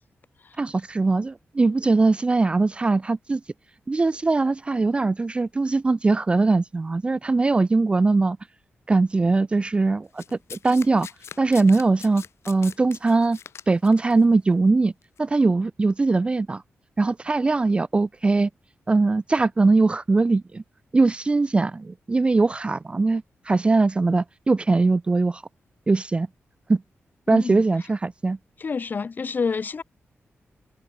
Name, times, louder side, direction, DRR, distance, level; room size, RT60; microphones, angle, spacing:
voice 1, 0.6-3.4 3.9-8.4 8.9-10.2 10.5-11.1 11.4-13.4 13.7-14.9 15.2-16.6 17.0-18.5 18.9-20.6 20.9-25.4 25.9-26.3 26.7-26.8 27.3-28.4, right 3 dB, 25° right, 0.5 m, -21 dB
Domestic sounds home sounds, 10.2-14.1 15.0-15.2, left 7 dB, 75° left, 2.3 m, -42 dB
voice 2, 27.3-27.6 28.6-29.8, left 5 dB, 45° left, 3.7 m, -27 dB
wide cardioid pair, 145°, 5 cm